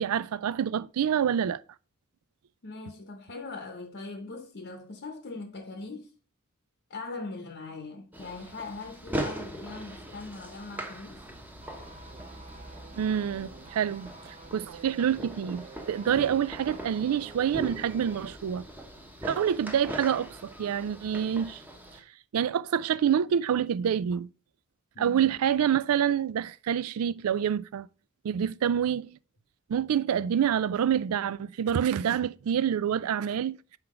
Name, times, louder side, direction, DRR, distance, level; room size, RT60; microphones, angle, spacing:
voice 1, 0.0-1.6 13.0-18.7 19.2-21.6 22.3-24.3 25.0-27.9 28.2-29.2 29.7-33.6, right 8 dB, 80° right, 0.3 m, -27 dB
voice 2, 2.6-6.1 6.9-11.2 24.9-25.3, left 3 dB, 50° left, 0.9 m, -41 dB
sound 1, 8.1-22.0, right 1 dB, 10° right, 0.9 m, -40 dB
sound 2, 11.6-18.3 18.6-18.7, right 3 dB, 30° right, 0.6 m, -50 dB
5.7 x 4.5 x 4.8 m
head